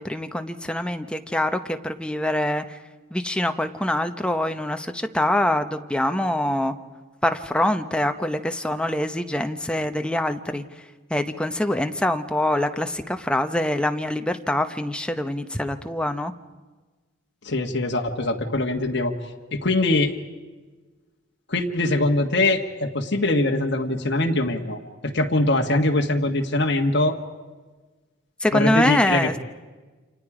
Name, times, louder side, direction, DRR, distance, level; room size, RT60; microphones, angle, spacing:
voice 1, 0.0-2.8 3.1-6.7 7.2-10.6 11.1-16.3 28.4-29.3, left 1 dB, 5° left, 7 dB, 0.8 m, -24 dB
voice 2, 17.4-19.1 19.5-20.1 21.5-27.2 28.5-29.4, left 2 dB, 60° left, 1 dB, 1.6 m, -22 dB
29.5 x 27.0 x 5.0 m, 1.3 s
head